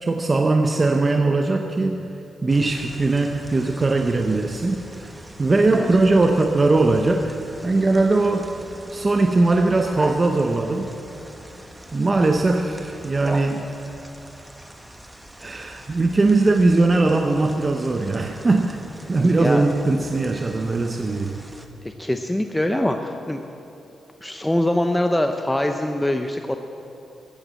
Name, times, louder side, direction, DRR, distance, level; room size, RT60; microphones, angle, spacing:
voice 1, 0.0-7.4 7.6-8.5 8.9-10.9 11.9-13.7 15.4-18.8 19.1-21.4, right 2 dB, 30° right, 4 dB, 0.7 m, -20 dB
sound 1, 2.5-21.7, right 1 dB, 10° right, 1.0 m, -40 dB
voice 2, 19.2-19.7 21.8-23.4 24.2-26.6, left 1 dB, 10° left, 5 dB, 0.6 m, -23 dB
14.0 x 8.2 x 7.5 m, 2.8 s
cardioid pair, 100°, 0 cm